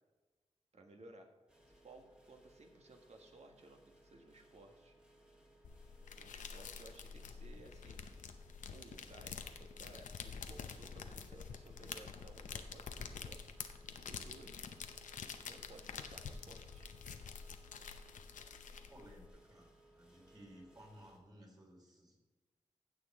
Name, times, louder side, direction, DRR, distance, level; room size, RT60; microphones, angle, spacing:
voice 1, 0.7-1.3 1.7-5.0 6.2-8.3 8.7-13.6 14.1-14.7 15.4-16.9, right 2 dB, 60° right, 3 dB, 1.6 m, -58 dB
sound 1, 1.5-21.2, right 1 dB, 5° right, 1.8 m, -65 dB
sound 2, 5.6-19.3, left 6 dB, 90° left, 0.7 m, -48 dB
voice 2, 18.7-22.2, equal, 30° right, -1 dB, 3.8 m, -58 dB
15.5 x 6.6 x 3.7 m, 1.2 s
cardioid pair, 60°, 13 cm